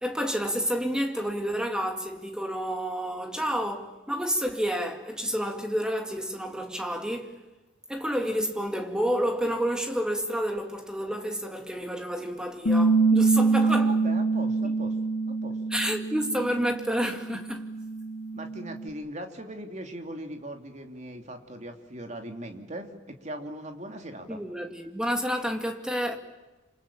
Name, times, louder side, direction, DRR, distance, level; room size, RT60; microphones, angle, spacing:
voice 1, 0.0-7.4 7.9-14.0 15.7-17.7 24.3-26.2, equal, 5° right, 2.2 m, -29 dB
Bass guitar, 12.7-18.9, right 3 dB, 85° left, 3.1 m, -25 dB
voice 2, 13.6-14.9 15.3-15.6 18.3-24.4, right 1 dB, 35° right, 2.9 m, -39 dB
27.5 x 27.0 x 7.4 m
head